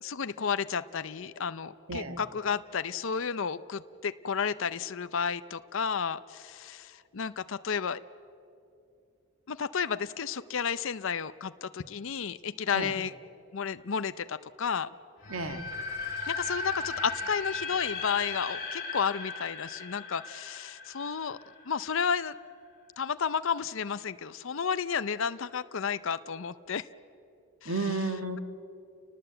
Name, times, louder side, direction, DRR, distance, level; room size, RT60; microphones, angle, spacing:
voice 1, 0.0-8.0 9.5-13.1 13.5-14.9 16.2-21.4 21.7-22.4 23.0-26.8 27.6-27.7, left 6 dB, 60° left, 13 dB, 0.6 m, -32 dB
voice 2, 1.9-2.2 12.7-12.9 15.3-15.6 27.6-28.4, right 3 dB, 70° right, 8 dB, 1.6 m, -32 dB
sound 1, 15.2-22.1, left 3 dB, 40° left, 4.3 m, -37 dB
30.0 x 19.5 x 7.9 m, 2.6 s
head